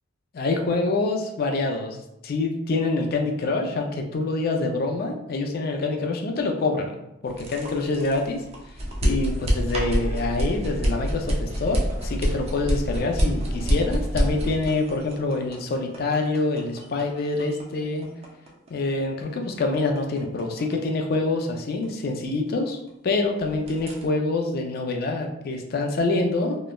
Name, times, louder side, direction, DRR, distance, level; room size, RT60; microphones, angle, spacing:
voice 1, 0.3-2.0 2.2-6.9 7.2-8.4 9.0-18.1 18.7-26.6, left 3 dB, 45° left, 3 dB, 0.3 m, -26 dB
sound 1, 7.3-23.1 23.4-24.1, equal, 30° right, 0.4 m, -27 dB
2.9 x 2.0 x 2.2 m, 0.84 s
head